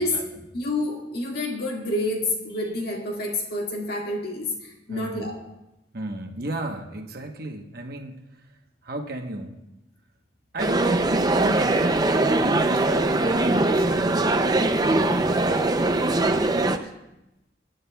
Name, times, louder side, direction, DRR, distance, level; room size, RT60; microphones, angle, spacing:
voice 1, 0.0-0.4 4.9-5.3 5.9-8.5 8.8-9.6 10.5-16.9, right 1 dB, 50° right, 3 dB, 1.1 m, -34 dB
voice 2, 0.5-5.4, left 2 dB, 55° left, 0 dB, 2.0 m, -28 dB
sound 1, 10.6-16.8, right 2 dB, 20° right, 0.5 m, -22 dB
20.0 x 10.5 x 2.3 m, 0.91 s
head